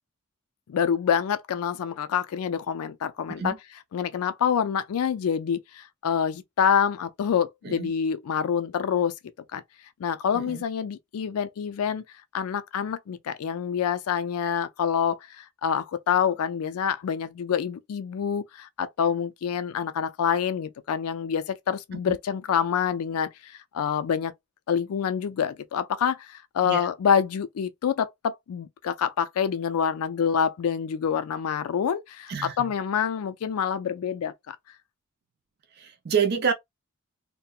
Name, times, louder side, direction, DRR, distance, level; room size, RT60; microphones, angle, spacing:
voice 1, 0.7-3.5 3.9-9.1 9.5-9.6 10.0-12.0 12.3-24.3 24.7-34.6, left 7 dB, 75° left, 0.4 m, -27 dB
voice 2, 32.3-32.7 35.8-36.5, right 6 dB, 45° right, 0.5 m, -28 dB
2.7 x 2.1 x 2.2 m
head